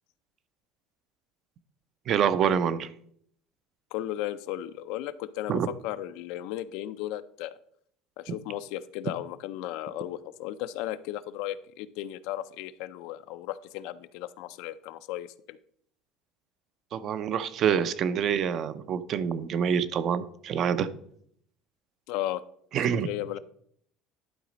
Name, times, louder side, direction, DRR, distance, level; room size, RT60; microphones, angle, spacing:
voice 1, 2.1-2.9 5.5-5.7 16.9-20.9 22.7-23.1, right 8 dB, 40° right, 13 dB, 0.5 m, -26 dB
voice 2, 3.9-7.5 8.2-15.6 22.1-22.4 22.9-23.4, left 13 dB, 70° left, 14 dB, 0.4 m, -35 dB
11.0 x 4.1 x 5.1 m, 0.67 s
cardioid pair, 145°, 0 cm